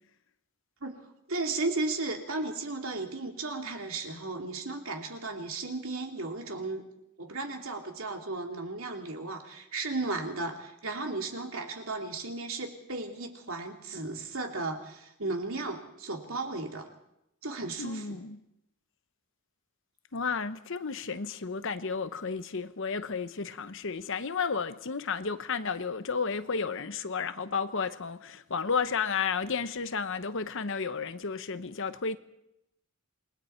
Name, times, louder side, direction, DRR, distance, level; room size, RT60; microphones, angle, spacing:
voice 1, 1.3-6.8 7.2-16.9 17.4-18.2, right 3 dB, 65° right, 2.8 m, -35 dB
voice 2, 17.8-18.4 20.1-32.2, left 5 dB, 60° left, 0.9 m, -32 dB
28.0 x 21.0 x 4.5 m
head